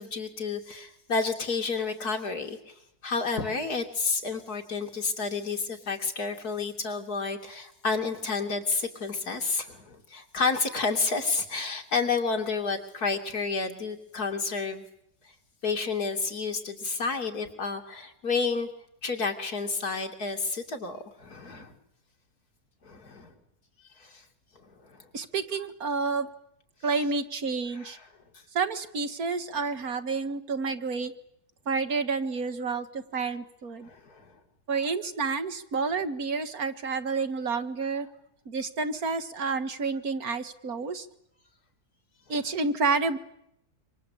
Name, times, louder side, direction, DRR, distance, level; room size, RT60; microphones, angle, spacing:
voice 1, 0.0-14.9 15.6-18.7 19.0-21.8 22.8-23.3 24.0-24.2 24.6-25.1 27.7-28.1 33.8-34.4, left 4 dB, 75° left, 4 dB, 3.4 m, -30 dB
voice 2, 25.1-26.3 26.8-28.0 28.5-31.1 31.7-33.9 34.7-38.1 38.5-41.1 42.3-43.2, right 4 dB, 70° right, 10 dB, 2.1 m, -29 dB
26.5 x 25.0 x 8.6 m, 0.78 s
omnidirectional pair, 1.6 m